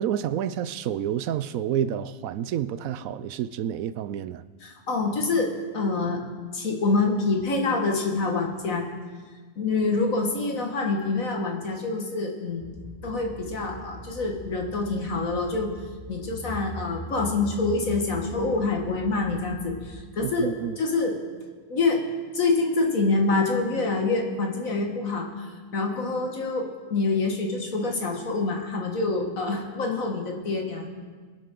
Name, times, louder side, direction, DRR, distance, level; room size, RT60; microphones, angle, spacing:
voice 1, 0.0-4.4 20.2-20.8, right 10 dB, 90° right, 1.0 m, -29 dB
voice 2, 4.6-6.2 6.5-8.9 9.6-12.7 13.0-15.7 16.1-21.2 21.7-22.1 22.3-30.9, left 3 dB, 80° left, 2.1 m, -26 dB
sound 1, 12.6-19.9, right 2 dB, 40° left, 3.8 m, -40 dB
21.5 x 10.0 x 3.8 m
omnidirectional pair, 1.4 m